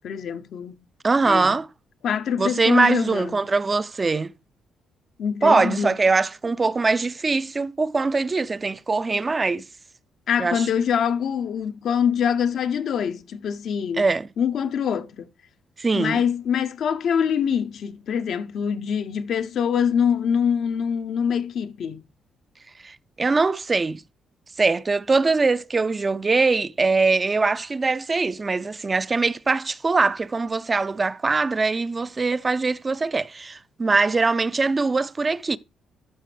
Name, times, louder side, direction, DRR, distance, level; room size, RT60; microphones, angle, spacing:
voice 1, 0.0-0.7 1.2-1.6 2.0-3.4 5.2-5.9 10.3-14.0 14.4-15.3 15.9-22.0, left 7 dB, 65° left, 0.6 m, -24 dB
voice 2, 1.0-1.7 2.4-4.3 5.4-9.7 10.4-10.7 14.0-14.3 15.8-16.2 22.8-24.0 24.6-35.6, right 3 dB, 30° right, 0.4 m, -22 dB
12.5 x 5.8 x 3.3 m
cardioid pair, 90°, 0 cm